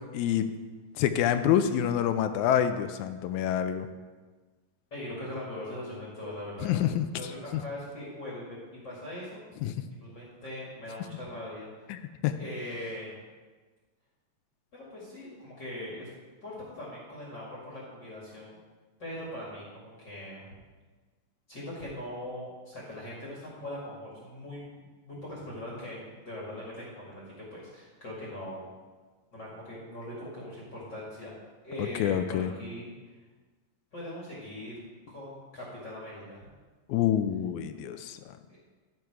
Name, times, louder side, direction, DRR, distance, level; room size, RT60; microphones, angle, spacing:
voice 1, 0.1-0.5 1.0-3.9 6.6-7.1 7.5-7.6 9.6-9.7 11.9-12.4 31.8-32.5 36.9-38.2, left 10 dB, 85° left, 9 dB, 2.0 m, -27 dB
voice 2, 4.9-6.8 7.2-8.6 8.8-9.4 9.9-11.7 12.4-13.2 14.7-16.1 16.4-18.6 19.0-20.6 21.5-28.7 29.3-31.3 31.6-32.9 33.9-34.7 35.1-36.5, left 1 dB, 40° left, -6 dB, 2.4 m, -41 dB
13.5 x 4.6 x 4.7 m, 1.4 s
omnidirectional pair, 3.3 m